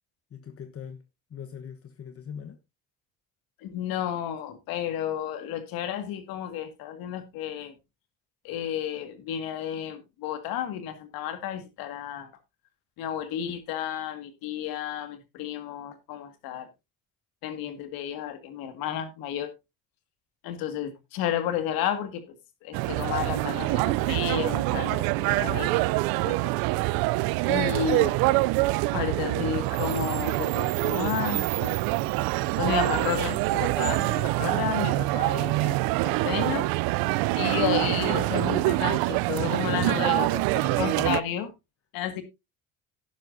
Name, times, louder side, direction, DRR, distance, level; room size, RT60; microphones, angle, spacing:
voice 1, 0.3-1.0 1.3-2.6 34.4-34.9 39.7-40.3 40.7-41.1, left 8 dB, 40° left, 1.1 m, -41 dB
voice 2, 3.6-7.7 8.4-12.3 13.0-16.7 17.4-19.5 20.4-22.4 22.6-25.9 26.2-26.5 27.4-28.2 28.9-31.8 32.6-36.7 37.4-40.4 40.8-41.5 41.9-42.2, left 10 dB, 80° left, 1.9 m, -32 dB
sound 1, 22.7-41.2, right 20 dB, 85° right, 0.5 m, -25 dB
12.0 x 10.5 x 2.6 m
cardioid pair, 90°, 35 cm